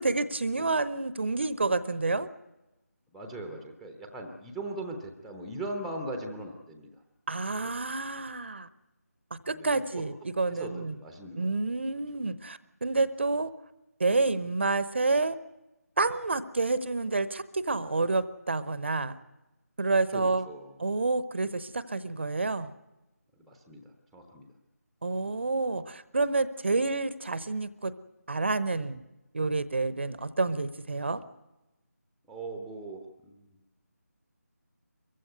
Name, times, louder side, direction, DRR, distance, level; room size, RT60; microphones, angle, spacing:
voice 1, 0.0-2.3 7.3-8.7 9.5-10.9 11.4-13.5 14.0-15.4 16.0-19.1 19.8-20.5 20.8-22.7 25.0-27.9 28.3-29.0 29.3-31.2, right 3 dB, 45° right, 15 dB, 0.9 m, -29 dB
voice 2, 3.1-7.0 7.5-7.7 9.5-10.0 10.5-11.5 20.1-20.8 23.4-24.5 32.3-33.6, right 2 dB, ahead, 5 dB, 0.9 m, -40 dB
23.5 x 15.0 x 9.3 m, 1.0 s
figure-of-eight pair, 160°, 9 cm